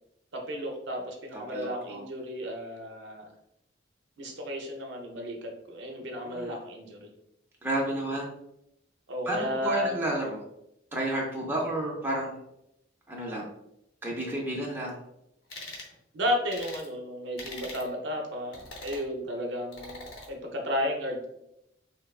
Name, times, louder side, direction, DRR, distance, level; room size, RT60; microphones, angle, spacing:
voice 1, 0.5-3.3 4.2-7.1 9.1-9.9 16.1-21.2, equal, 70° right, 1 dB, 0.6 m, -33 dB
voice 2, 1.3-2.0 6.2-6.6 7.6-8.3 9.3-10.4 10.9-12.4 13.1-13.5 14.0-15.0, right 1 dB, 10° right, -3 dB, 0.4 m, -31 dB
sound 1, 15.5-15.9 16.5-16.9 17.4-17.9 18.5-19.1 19.7-20.3, left 2 dB, 65° left, 0.7 m, -42 dB
3.3 x 2.1 x 2.3 m, 0.81 s
head